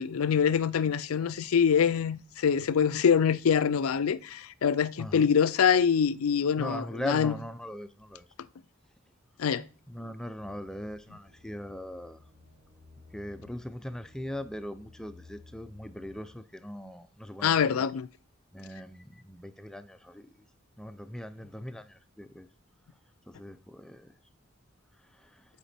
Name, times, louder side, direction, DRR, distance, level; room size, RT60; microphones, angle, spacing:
voice 1, 0.0-7.4 9.4-9.6 17.4-18.1, left 7 dB, 90° left, 0.4 m, -25 dB
voice 2, 5.0-5.3 6.6-8.2 9.9-12.2 13.1-17.9 18.5-20.3 20.8-22.5 23.3-24.1, equal, 5° left, 0.4 m, -40 dB
sound 1, 10.4-16.3, left 3 dB, 55° right, 2.7 m, -55 dB
8.1 x 5.1 x 4.3 m
head